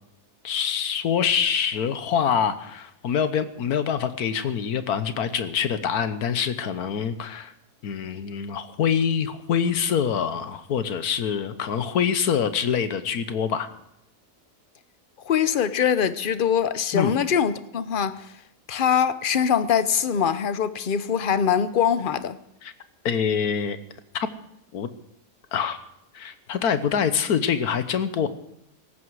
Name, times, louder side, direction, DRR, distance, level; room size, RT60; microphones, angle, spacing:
voice 1, 0.4-7.5 7.8-13.7 16.9-17.1 22.6-22.7 23.0-23.8 24.1-24.3 24.7-24.9 25.5-25.8 26.1-28.3, left 7 dB, 75° left, 1.5 m, -25 dB
voice 2, 15.3-18.3 18.7-22.4, left 8 dB, 50° left, 0.6 m, -23 dB
17.5 x 15.0 x 4.8 m
omnidirectional pair, 1.6 m